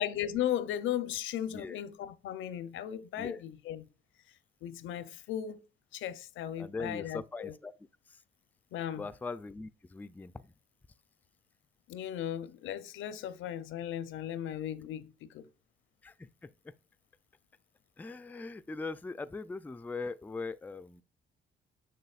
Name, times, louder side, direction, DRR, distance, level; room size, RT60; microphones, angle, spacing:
voice 1, 0.0-3.8 4.6-5.6 5.9-7.5 8.7-9.0 11.9-15.4, left 11 dB, 80° left, 0.6 m, -36 dB
voice 2, 6.6-7.7 8.1-8.2 8.9-10.5 16.0-16.7 18.0-21.0, left 3 dB, 10° left, 0.3 m, -41 dB
6.7 x 6.2 x 2.4 m
cardioid pair, 90°, 20 cm